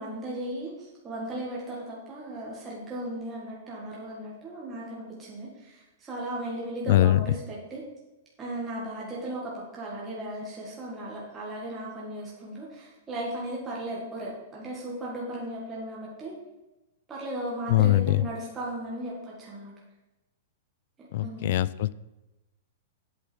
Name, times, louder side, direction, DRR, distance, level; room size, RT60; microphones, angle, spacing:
voice 1, 0.0-7.8 8.4-16.3 17.1-19.7 21.0-21.6, right 1 dB, 10° right, -5 dB, 1.6 m, -36 dB
voice 2, 6.9-7.2 17.7-18.2 21.1-21.9, left 14 dB, 45° left, 18 dB, 0.3 m, -22 dB
8.5 x 8.2 x 4.4 m, 1.0 s
supercardioid pair, 175°, 0 cm